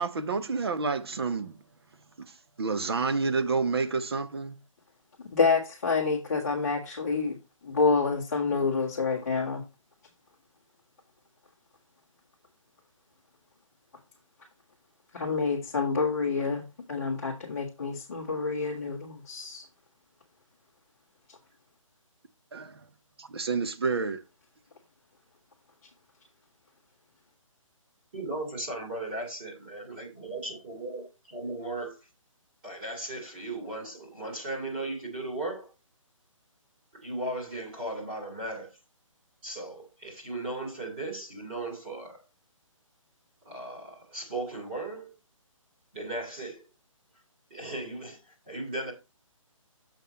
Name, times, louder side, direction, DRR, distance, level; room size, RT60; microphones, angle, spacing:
voice 1, 0.0-1.6 2.2-4.6 22.5-22.8 23.2-24.2, right 4 dB, 45° right, 0.8 m, -29 dB
voice 2, 5.3-7.4 7.6-9.6 15.1-19.6 21.3-21.4, left 4 dB, 25° left, 1.4 m, -28 dB
voice 3, 28.1-32.0 32.6-35.7 36.9-38.8 39.4-42.2 43.4-45.1 45.9-46.6 47.5-48.9, right 2 dB, 20° right, 2.4 m, -36 dB
7.3 x 5.7 x 4.0 m
hypercardioid pair, 175°, 17 cm